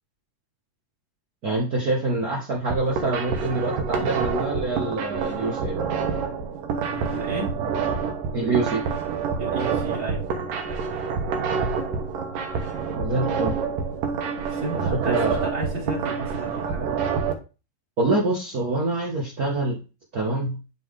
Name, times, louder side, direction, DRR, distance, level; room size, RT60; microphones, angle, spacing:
voice 1, 1.4-5.7 8.3-8.8 12.9-13.5 14.7-15.5 18.0-19.8 20.1-20.6, right 2 dB, 75° right, -2 dB, 0.8 m, -25 dB
sound 1, 2.6-17.3, right 5 dB, 90° right, 2.7 m, -27 dB
voice 2, 6.8-7.5 9.4-10.2 14.3-16.9, right 2 dB, 35° right, -7 dB, 1.8 m, -33 dB
10.0 x 3.4 x 3.7 m, 0.31 s
omnidirectional pair, 3.7 m